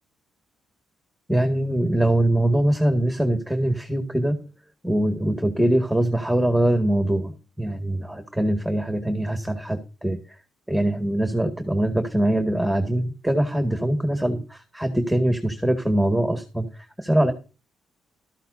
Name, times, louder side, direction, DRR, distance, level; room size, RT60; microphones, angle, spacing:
voice 1, 1.3-4.4 4.8-7.3 7.6-10.4 10.7-17.3, right 1 dB, ahead, 5 dB, 2.0 m, -23 dB
13.5 x 13.5 x 2.7 m, 0.33 s
cardioid pair, 90°, 0 cm